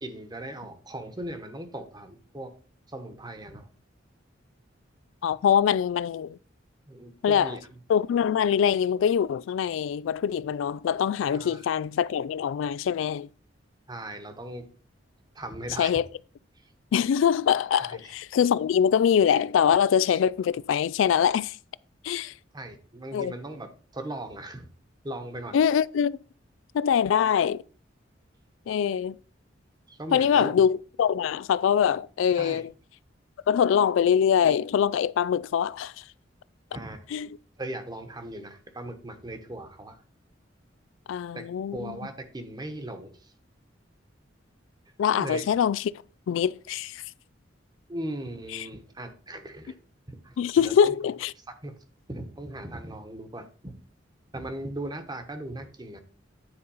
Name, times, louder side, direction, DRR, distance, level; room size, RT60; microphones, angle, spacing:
voice 1, 0.0-2.5 2.9-3.7 6.9-7.6 11.3-11.7 13.9-14.7 15.3-15.9 17.9-18.0 22.5-24.7 25.0-25.6 29.9-30.6 32.3-32.6 36.7-37.1 37.6-40.0 41.3-43.3 45.1-45.5 47.9-49.8 50.1-50.4 50.6-50.9 51.6-51.7 52.1-53.8 54.3-56.0, right 1 dB, 20° right, 1.1 m, -38 dB
voice 2, 5.2-6.4 7.2-7.6 7.9-13.3 15.8-16.0 16.9-21.6 22.0-22.3 23.1-23.3 25.5-26.2 26.7-27.6 28.7-29.1 30.1-32.7 33.5-36.0 37.1-37.3 41.1-42.0 45.0-45.8 46.3-47.0 48.5-48.7 50.4-51.3, left 8 dB, 85° left, 0.3 m, -23 dB
9.9 x 4.0 x 5.5 m
head